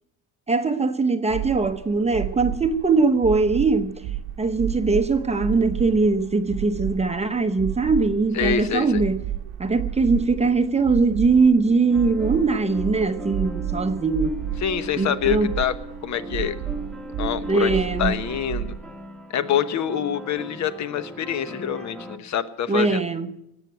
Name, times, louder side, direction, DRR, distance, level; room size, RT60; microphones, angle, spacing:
voice 1, 0.5-3.9 4.4-9.2 9.6-14.4 15.0-15.5 17.4-18.2 22.7-23.3, right 3 dB, 15° right, 0.9 m, -21 dB
sound 1, 1.3-18.7, right 11 dB, 80° right, 1.2 m, -32 dB
voice 2, 8.3-9.0 14.6-15.8 16.0-16.6 17.2-17.7 18.0-18.7 19.3-23.0, left 8 dB, 45° left, 1.1 m, -26 dB
sound 2, 11.9-22.2, equal, ahead, 1.3 m, -38 dB
18.0 x 8.2 x 9.2 m
cardioid pair, 130°, 40 cm